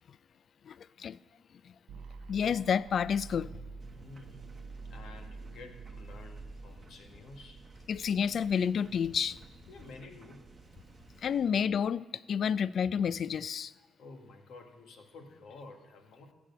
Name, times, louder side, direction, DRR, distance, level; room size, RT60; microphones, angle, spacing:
voice 1, 0.7-1.2 2.3-3.5 7.9-9.4 11.2-13.7, left 7 dB, 55° left, 0.3 m, -30 dB
sound 1, 1.9-7.9, right 4 dB, 80° right, 0.6 m, -47 dB
sound 2, 3.8-11.5, right 3 dB, 35° right, 0.9 m, -55 dB
voice 2, 3.9-4.5 4.9-7.6 9.7-10.5 14.0-16.3, left 3 dB, 75° left, 1.7 m, -51 dB
15.0 x 5.2 x 8.2 m
cardioid pair, 90°, 0 cm